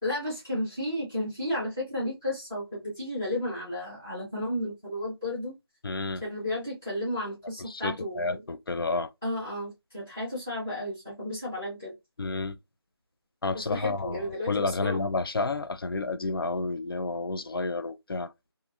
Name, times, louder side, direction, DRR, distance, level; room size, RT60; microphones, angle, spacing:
voice 1, 0.0-5.5 6.2-8.4 9.2-11.9 13.5-15.0, left 1 dB, 5° left, 0.5 m, -33 dB
voice 2, 5.8-6.2 7.7-9.1 12.2-12.6 13.4-18.3, left 3 dB, 60° left, 0.4 m, -30 dB
2.6 x 2.3 x 2.6 m
figure-of-eight pair, 170°, 13 cm